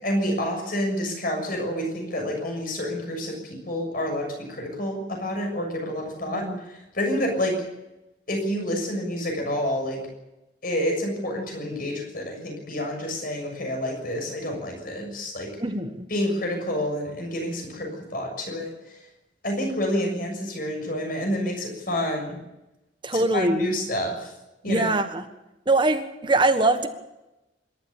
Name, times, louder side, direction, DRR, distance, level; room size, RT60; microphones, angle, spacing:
voice 1, 0.0-7.6 8.3-10.0 10.6-15.5 16.1-18.9 19.4-22.4 23.1-24.3 24.6-25.0, equal, 50° left, 3 dB, 6.7 m, -28 dB
voice 2, 6.3-6.6 15.6-16.1 23.0-23.7 24.7-25.2 25.7-26.9, right 2 dB, 25° right, 8 dB, 1.5 m, -23 dB
26.5 x 12.5 x 8.5 m, 0.97 s
head